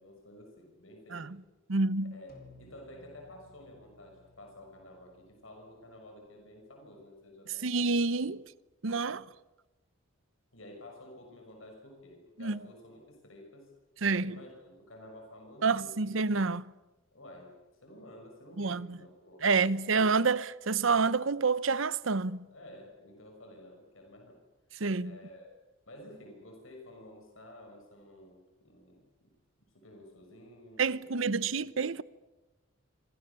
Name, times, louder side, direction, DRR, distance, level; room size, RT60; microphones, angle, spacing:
voice 1, 0.0-1.3 2.1-8.3 8.8-8.9 10.5-13.8 14.2-16.1 17.1-17.5 17.8-20.0 22.5-24.4 24.7-25.6 25.9-29.0 29.7-31.3 31.6-31.7, left 1 dB, 75° left, 6.1 m, -52 dB
voice 2, 1.7-2.1 7.6-8.4 8.8-9.2 12.4-12.6 14.0-14.4 15.6-16.6 18.6-19.0 19.4-22.4 24.8-25.1 30.8-32.0, right 4 dB, 70° right, 0.9 m, -28 dB
sound 1, 2.3-6.9, left 1 dB, 50° left, 4.7 m, -60 dB
27.5 x 26.0 x 7.0 m
head